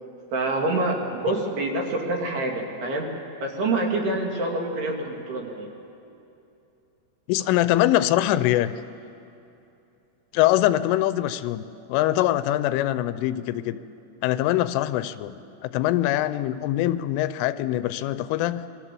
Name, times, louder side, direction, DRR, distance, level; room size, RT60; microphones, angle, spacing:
voice 1, 0.3-3.1 3.4-5.7, right 2 dB, 60° right, 0 dB, 4.3 m, -26 dB
voice 2, 7.3-8.7 10.3-11.6 11.9-13.8 14.2-18.7, left 14 dB, 85° left, 13 dB, 3.3 m, -23 dB
26.5 x 22.5 x 7.6 m, 2.8 s
omnidirectional pair, 5.6 m